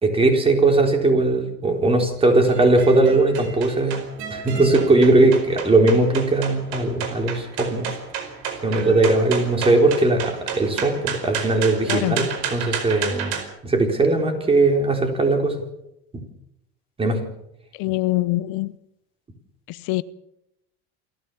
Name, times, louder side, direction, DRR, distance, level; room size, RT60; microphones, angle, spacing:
voice 1, 0.0-4.0 4.3-7.9 8.6-13.4 13.6-15.5 17.0-17.2, right 2 dB, 15° right, 4.0 m, -19 dB
sound 1, 1.7-13.4, right 7 dB, 65° right, 5.0 m, -32 dB
voice 2, 11.9-12.3 17.8-18.7 19.7-20.0, left 19 dB, 70° left, 0.8 m, -24 dB
27.5 x 14.0 x 7.0 m
cardioid pair, 140°, 32 cm